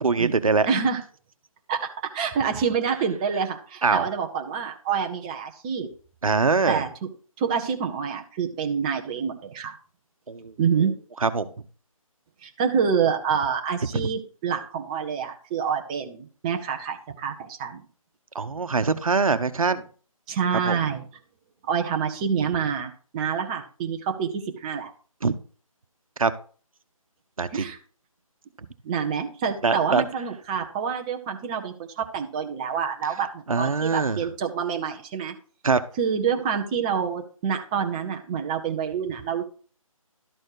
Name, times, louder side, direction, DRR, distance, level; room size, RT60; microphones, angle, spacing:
voice 1, 0.0-0.7 3.8-4.0 6.2-6.8 10.3-10.5 11.2-11.5 14.0-14.1 18.3-19.9 20.7-20.8 25.2-25.3 26.2-26.3 27.4-27.7 29.6-30.0 33.5-34.2 35.6-35.8, right 4 dB, 70° right, 12 dB, 1.0 m, -23 dB
voice 2, 0.6-1.0 1.7-5.9 6.7-6.9 7.4-9.7 10.6-10.9 12.4-17.8 20.3-21.0 21.7-24.9 27.5-27.8 28.8-35.3 36.0-39.4, right 7 dB, 15° right, 3 dB, 0.7 m, -27 dB
12.0 x 4.3 x 4.8 m, 0.40 s
figure-of-eight pair, 155°, 18 cm